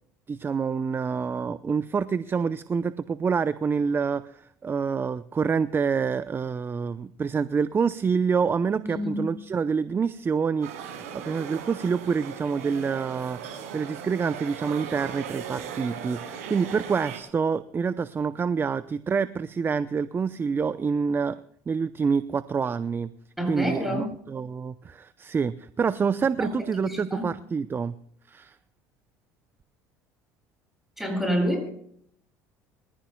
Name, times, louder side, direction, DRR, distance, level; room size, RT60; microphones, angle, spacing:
voice 1, 0.3-21.4 21.7-23.1 23.5-28.0 28.3-28.5, right 5 dB, 25° right, 14 dB, 0.6 m, -27 dB
voice 2, 8.8-9.3 23.4-24.2 26.4-26.5 26.8-27.2 31.0-31.7, equal, 5° right, 2 dB, 7.8 m, -28 dB
sound 1, 10.6-17.2, right 8 dB, 85° right, 6.0 m, -38 dB
25.5 x 15.0 x 2.3 m, 0.66 s
supercardioid pair, 80°, 8 cm